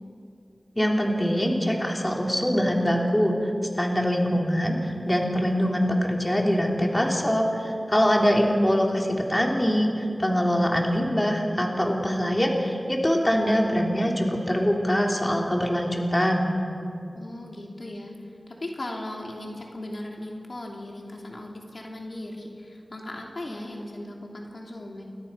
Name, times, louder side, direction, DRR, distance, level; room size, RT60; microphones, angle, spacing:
voice 1, 0.7-16.5, equal, 15° left, 0 dB, 3.3 m, -23 dB
voice 2, 17.1-18.1 18.5-25.0, left 1 dB, 60° left, 0 dB, 3.0 m, -37 dB
29.0 x 22.5 x 5.7 m, 2.5 s
wide cardioid pair, 70°, 0 cm